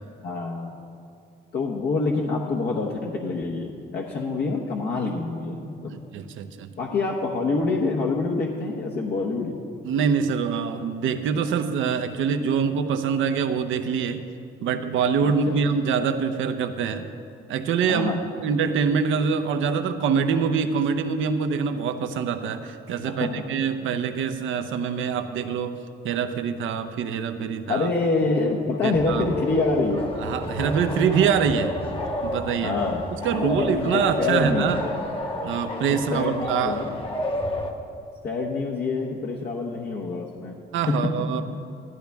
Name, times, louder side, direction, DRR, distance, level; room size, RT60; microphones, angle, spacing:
voice 1, 0.2-0.7 1.5-5.9 6.8-9.6 15.2-15.6 17.9-18.2 23.0-23.3 27.7-30.0 32.6-33.0 33.4-35.0 36.1-36.9 38.2-40.5 40.9-41.1, left 3 dB, 55° left, -2 dB, 1.1 m, -26 dB
voice 2, 5.9-6.7 9.8-14.2 14.6-17.1 17.5-18.1 18.4-25.8 26.0-27.9 28.8-29.3 30.2-31.7 32.2-32.7 33.2-34.8 35.4-36.8 40.7-41.4, right 6 dB, 80° right, 7 dB, 0.8 m, -25 dB
sound 1, 28.9-37.7, left 1 dB, 25° left, 1.3 m, -30 dB
13.5 x 12.0 x 3.5 m, 2.5 s
cardioid pair, 90°, 20 cm